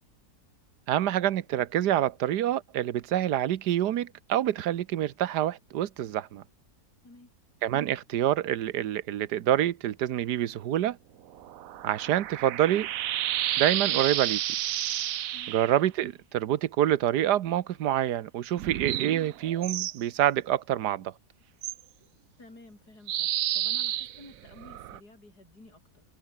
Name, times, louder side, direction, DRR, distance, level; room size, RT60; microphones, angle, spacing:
voice 1, 0.9-6.4 7.6-11.0 11.8-12.9 13.6-14.4 15.5-21.1, right 12 dB, 85° right, 1.5 m, -27 dB
sound 1, 11.3-15.8 18.6-20.0 21.6-21.7 23.1-25.0, right 12 dB, 65° right, 1.0 m, -31 dB
voice 2, 22.4-23.3 23.5-26.0, left 2 dB, 75° left, 7.6 m, -52 dB
omnidirectional pair, 1.7 m